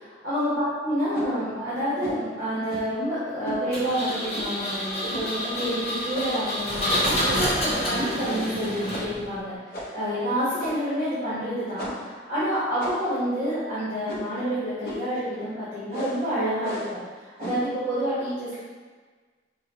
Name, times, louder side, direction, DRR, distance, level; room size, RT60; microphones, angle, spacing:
voice 1, 0.0-17.0 17.4-18.6, equal, 45° right, -13 dB, 1.2 m, -28 dB
sound 1, 1.1-1.3 2.0-2.3 2.7-3.0 3.5-3.6 4.3-4.6 5.1-5.3 5.6-5.7 6.1-6.5 6.9-7.8 8.3-8.6 8.9-9.2 9.7-10.0 10.6-11.0 11.8-12.1 12.8-13.2 14.1-14.4 14.8-15.1 15.9-16.2 16.6-17.0 17.4-17.7, equal, 55° left, 0.6 m, -35 dB
Engine, 3.7-9.4, equal, 35° left, 1.0 m, -28 dB
4.8 x 2.2 x 2.9 m, 1.4 s
head